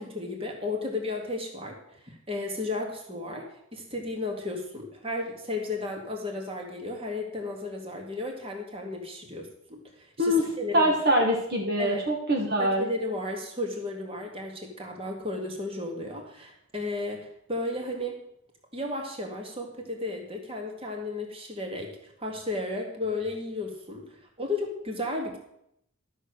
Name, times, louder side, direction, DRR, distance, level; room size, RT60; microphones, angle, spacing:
voice 1, 0.0-1.8 2.0-3.5 3.7-10.9 11.8-12.0 12.6-18.2 18.7-24.0 24.4-25.4, left 2 dB, 25° right, 2 dB, 2.1 m, -34 dB
voice 2, 10.7-12.9, equal, 50° right, 0 dB, 1.6 m, -24 dB
13.0 x 6.6 x 6.6 m, 0.75 s
head